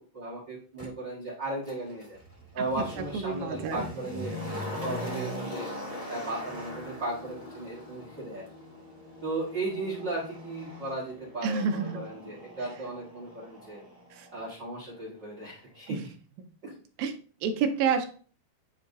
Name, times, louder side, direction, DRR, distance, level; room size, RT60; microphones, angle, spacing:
voice 1, 0.0-2.2 2.5-5.7 6.1-8.4 9.2-13.8 14.3-16.0 16.6-16.7, right 2 dB, 60° right, -5 dB, 1.1 m, -36 dB
Motor vehicle (road), 0.8-0.9 1.6-14.5 14.8-14.9, left 1 dB, 45° left, 0.4 m, -41 dB
voice 2, 2.6-3.9 11.4-12.0 12.6-12.7 14.1-14.3 15.9-16.0 16.4-16.5 17.0-17.1 17.4-18.1, right 6 dB, 75° right, 6 dB, 2.2 m, -29 dB
10.5 x 4.3 x 2.7 m, 0.41 s
omnidirectional pair, 4.8 m